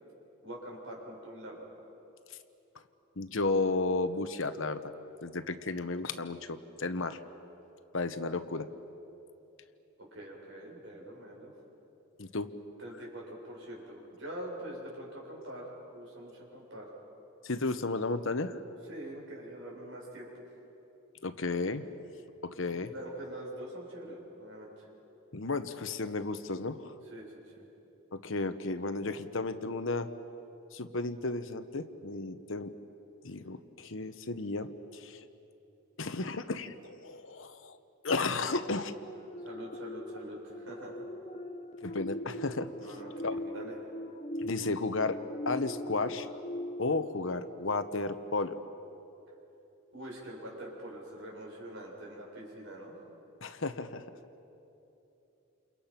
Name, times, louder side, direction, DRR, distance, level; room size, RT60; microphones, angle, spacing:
voice 1, 0.4-1.7 10.0-11.5 12.8-16.9 18.9-20.4 22.7-24.9 27.1-27.6 39.4-41.0 42.8-43.8 49.9-52.9, right 1 dB, 60° right, -3 dB, 7.6 m, -44 dB
voice 2, 3.2-4.9 5.2-7.2 7.9-8.7 12.2-12.5 17.4-18.6 21.2-21.8 22.4-22.9 25.3-26.9 28.1-30.1 30.7-32.7 33.2-35.3 36.0-37.8 38.0-38.9 41.8-42.7 43.2-43.4 44.4-46.3 46.8-48.6 53.4-54.0, left 3 dB, 65° left, 10 dB, 1.1 m, -33 dB
sound 1, 38.4-48.3 48.8-49.0, left 1 dB, 30° left, 0.9 m, -42 dB
29.5 x 29.0 x 5.9 m, 3.0 s
head